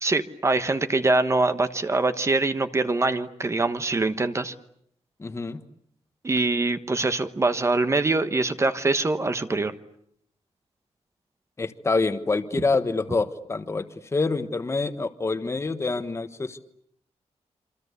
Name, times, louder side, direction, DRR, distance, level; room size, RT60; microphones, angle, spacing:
voice 1, 0.0-4.5 6.2-9.7, right 3 dB, 25° right, 10 dB, 1.2 m, -24 dB
voice 2, 5.2-5.6 11.6-13.9 14.1-16.6, left 3 dB, 25° left, 9 dB, 1.3 m, -26 dB
28.0 x 26.0 x 8.3 m, 0.72 s
wide cardioid pair, 180°, 11 cm